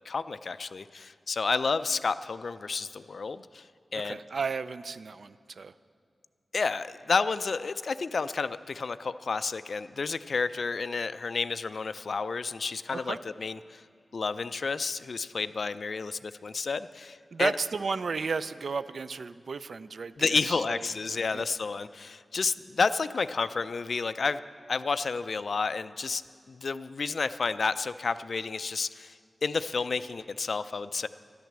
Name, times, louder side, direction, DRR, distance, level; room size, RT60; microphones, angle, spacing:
voice 1, 0.1-3.6 3.9-4.2 6.5-13.8 14.1-17.5 20.2-24.4 24.7-26.2 26.5-31.1, left 4 dB, 60° left, 13 dB, 0.4 m, -30 dB
voice 2, 3.9-5.7 12.9-13.2 17.3-20.8 21.3-21.5, right 4 dB, 65° right, 14 dB, 0.4 m, -33 dB
12.0 x 11.0 x 7.4 m, 2.2 s
wide cardioid pair, 135°, 0 cm